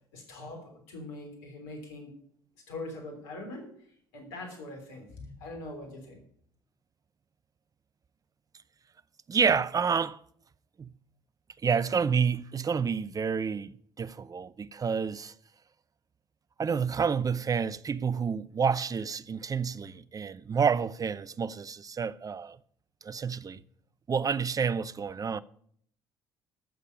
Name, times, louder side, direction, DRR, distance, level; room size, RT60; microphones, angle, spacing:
voice 1, 0.1-2.2 2.6-3.7 4.1-6.2, left 2 dB, 75° left, 3.4 m, -42 dB
voice 2, 9.3-10.2 10.8-10.9 11.6-15.3 16.6-22.6 23.0-23.6 24.1-25.4, right 6 dB, 30° right, 0.6 m, -29 dB
14.0 x 6.8 x 7.1 m
hypercardioid pair, 50°, 12 cm